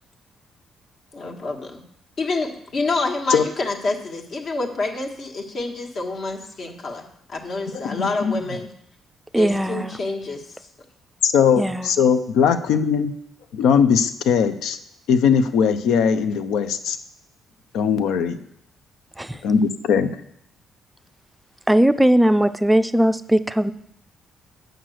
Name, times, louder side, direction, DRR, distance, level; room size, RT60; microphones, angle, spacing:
voice 1, 1.1-1.8 2.2-8.7 9.3-10.6, left 3 dB, 55° left, 2 dB, 1.5 m, -27 dB
voice 2, 7.7-8.4 11.2-13.1 13.5-14.8 15.1-17.0 17.7-18.4 19.4-20.2, left 7 dB, 85° left, 10 dB, 0.6 m, -19 dB
voice 3, 9.3-9.9 11.6-11.9 19.2-19.4 21.7-23.7, right 1 dB, 10° right, 11 dB, 0.4 m, -18 dB
8.0 x 6.0 x 6.4 m, 0.73 s
cardioid pair, 90°, 0 cm